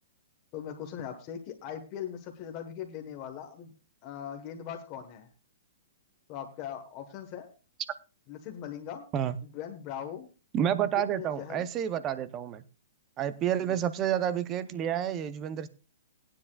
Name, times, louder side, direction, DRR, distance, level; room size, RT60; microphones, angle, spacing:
voice 1, 0.5-3.7 4.0-5.3 6.3-7.5 8.3-9.1 9.4-10.3 10.7-11.7 13.7-13.8, left 9 dB, 25° left, 4 dB, 1.2 m, -40 dB
voice 2, 10.5-12.6 13.2-15.7, right 10 dB, 15° right, 15 dB, 0.6 m, -29 dB
18.5 x 10.0 x 2.3 m, 0.32 s
hypercardioid pair, 175°, 0 cm